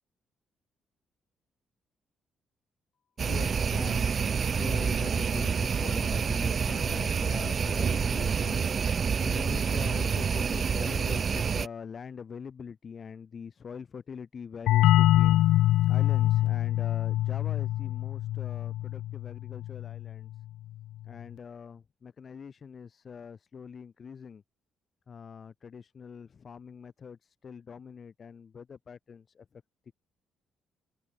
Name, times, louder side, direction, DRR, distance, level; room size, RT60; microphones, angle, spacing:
voice 1, 3.2-15.4 15.9-20.3 21.0-24.4 25.1-29.6, left 6 dB, 45° left, 4.2 m, -43 dB
sound 1, 3.2-11.7, right 6 dB, 45° right, 0.7 m, -28 dB
sound 2, 14.7-20.1, left 14 dB, 85° left, 1.1 m, -25 dB
open air
cardioid pair, 90°, 0 cm